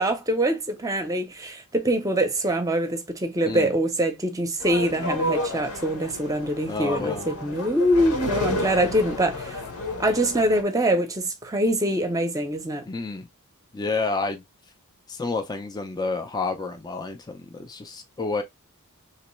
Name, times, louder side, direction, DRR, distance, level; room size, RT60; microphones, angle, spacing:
voice 1, 0.0-9.6 10.0-12.9, right 1 dB, 15° right, 0.7 m, -24 dB
sound 1, 4.6-10.6, left 2 dB, 80° left, 1.2 m, -31 dB
voice 2, 6.7-7.3 12.9-13.3 13.7-14.4 15.1-18.4, left 3 dB, 20° left, 0.5 m, -29 dB
3.2 x 3.0 x 3.1 m
head